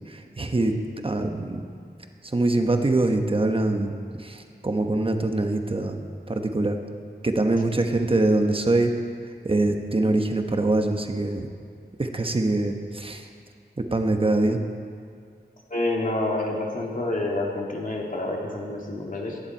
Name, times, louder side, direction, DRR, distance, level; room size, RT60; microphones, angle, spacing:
voice 1, 0.1-0.7 1.0-1.7 2.3-6.0 6.3-6.8 7.2-9.0 9.4-11.5 12.0-13.3 13.8-14.6, right 2 dB, 30° right, 5 dB, 1.1 m, -24 dB
voice 2, 15.7-19.4, left 2 dB, 50° left, -2 dB, 2.3 m, -28 dB
16.0 x 10.5 x 4.5 m, 2.2 s
wide cardioid pair, 90°, 18 cm